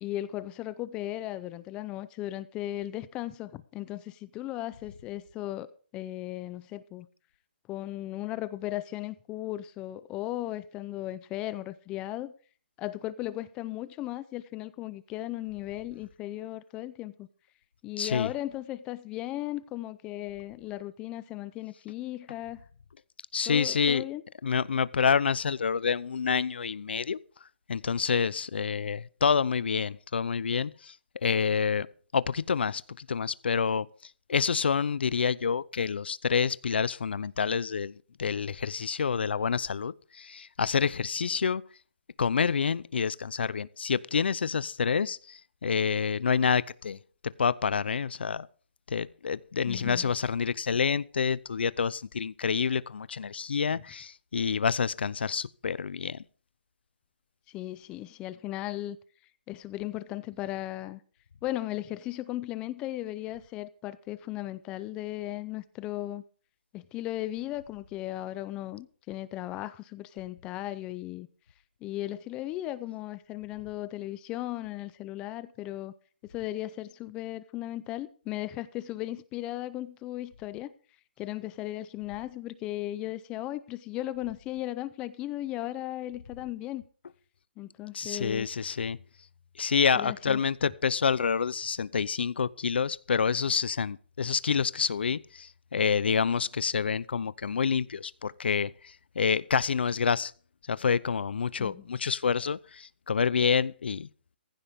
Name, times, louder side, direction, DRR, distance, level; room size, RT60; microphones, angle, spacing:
voice 1, 0.0-5.7 5.9-7.1 7.7-12.3 12.8-17.3 17.8-22.6 23.5-24.2 49.7-50.1 57.5-59.0 59.5-61.0 61.4-66.2 66.7-71.3 71.8-75.9 76.2-80.7 81.2-86.8 87.6-88.5 89.9-90.4 101.6-101.8, left 15 dB, 15° left, 0.6 m, -36 dB
voice 2, 18.0-18.3 23.3-24.0 24.4-27.2 27.7-30.9 31.2-31.9 32.1-33.9 34.3-41.6 42.2-47.0 47.4-48.5 48.9-56.2 87.9-89.0 89.6-100.3 100.7-104.1, left 6 dB, 75° left, 0.7 m, -28 dB
16.0 x 15.5 x 3.6 m
hypercardioid pair, 165°, 6 cm